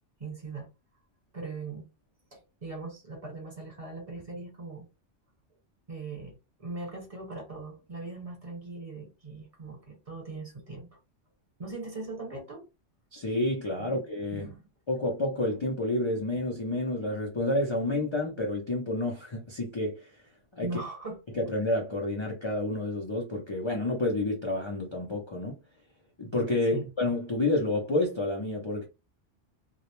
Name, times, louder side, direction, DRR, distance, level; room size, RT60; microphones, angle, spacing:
voice 1, 0.2-0.7 1.3-1.8 2.3-4.9 5.9-10.9 11.6-12.7 13.8-14.0 14.3-14.7 20.6-21.2 26.7-26.8, right 3 dB, 30° right, 1.0 m, -40 dB
voice 2, 13.1-14.5 14.9-20.1 20.5-20.7 21.3-25.6 26.2-28.9, left 2 dB, 50° left, 0.3 m, -29 dB
2.2 x 2.0 x 2.9 m
omnidirectional pair, 1.2 m